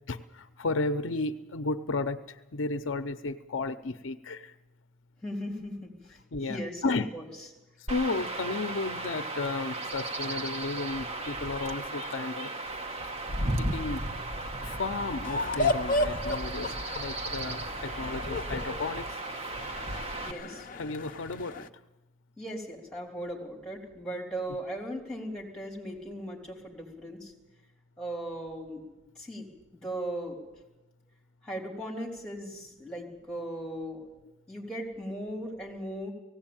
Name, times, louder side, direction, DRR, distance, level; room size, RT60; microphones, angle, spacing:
voice 1, 0.1-2.2 2.5-4.5 6.3-7.1 7.9-12.5 13.3-14.1 14.6-19.1 20.7-21.7, left 3 dB, 75° left, 10 dB, 0.7 m, -33 dB
voice 2, 5.2-7.5 20.2-20.7 22.4-27.3 28.0-28.9 29.2-30.4 31.4-34.0 34.5-36.1, right 1 dB, 5° left, 0 dB, 3.8 m, -38 dB
Chirp tweet / Wind / Stream, 7.9-20.3, right 2 dB, 30° right, 1.1 m, -35 dB
sound 1, 15.2-21.7, left 2 dB, 45° left, 0.7 m, -33 dB
18.0 x 16.0 x 8.9 m, 1.0 s
head